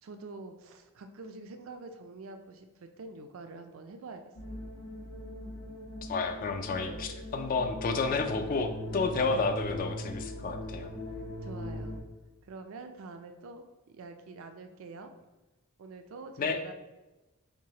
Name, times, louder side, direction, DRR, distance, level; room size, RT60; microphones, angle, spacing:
voice 1, 0.0-4.2 4.5-4.6 6.7-7.1 8.3-8.6 9.3-9.4 11.4-12.0 12.4-15.1 15.8-16.7, right 3 dB, 65° right, 7 dB, 0.4 m, -46 dB
sound 1, 4.3-12.0, equal, 90° left, 0.9 m, -40 dB
voice 2, 6.0-10.9 16.4-16.7, left 4 dB, 40° left, 7 dB, 0.3 m, -31 dB
sound 2, 8.9-9.6 9.9-10.0 10.7-10.8 11.5-11.9, equal, 55° left, 1.4 m, -56 dB
4.6 x 2.7 x 2.8 m, 1.1 s
head